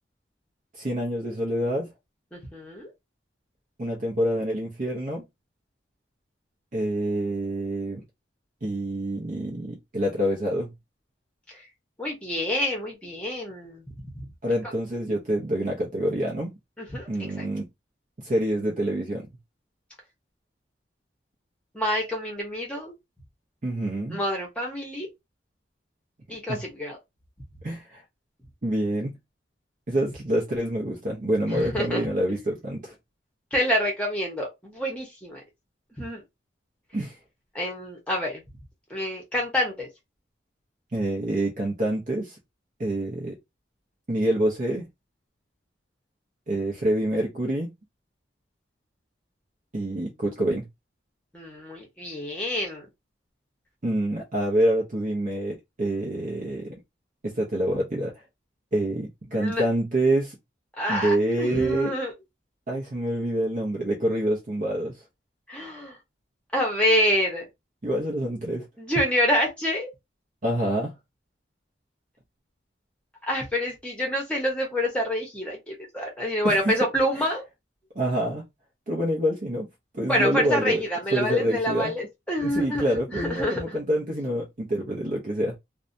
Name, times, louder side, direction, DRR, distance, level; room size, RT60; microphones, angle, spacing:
voice 1, 0.7-1.9 3.8-5.2 6.7-8.0 8.6-10.7 14.4-16.5 17.1-17.7 18.2-19.3 23.6-24.2 26.5-26.6 27.6-28.0 28.6-29.2 29.9-32.9 36.9-37.2 40.9-42.4 42.8-43.4 44.1-44.9 46.5-47.7 49.7-50.7 53.8-56.7 57.2-58.1 58.7-60.3 60.9-61.9 62.7-65.0 67.8-68.7 70.4-71.0 76.4-76.8 77.2-77.3 77.9-78.5 78.9-79.7 79.9-80.8 81.1-81.9 82.4-85.6, right 1 dB, 40° right, 0.6 m, -26 dB
voice 2, 2.3-2.9 11.5-11.7 12.0-13.9 16.8-17.1 17.4-17.5 21.7-22.9 24.1-25.1 26.3-27.0 31.5-32.1 33.5-35.4 35.9-36.2 37.5-38.4 38.9-39.9 51.3-52.9 59.3-59.6 60.8-62.1 65.5-66.0 66.5-67.5 68.8-69.9 73.2-77.4 80.1-83.8, equal, 5° left, 0.9 m, -27 dB
2.6 x 2.2 x 2.6 m
head